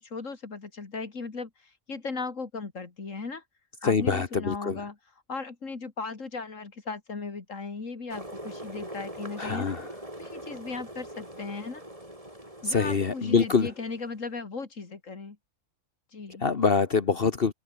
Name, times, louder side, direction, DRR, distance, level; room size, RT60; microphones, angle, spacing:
voice 1, 0.0-3.4 3.8-5.0 5.3-9.7 10.2-11.8 12.6-15.4 16.1-16.4, left 4 dB, 85° left, 2.9 m, -37 dB
voice 2, 3.8-4.8 9.4-9.9 12.6-13.7 16.4-17.5, left 5 dB, 50° left, 1.4 m, -24 dB
sound 1, 8.1-14.2, right 1 dB, 25° right, 7.7 m, -42 dB
omnidirectional pair, 1.3 m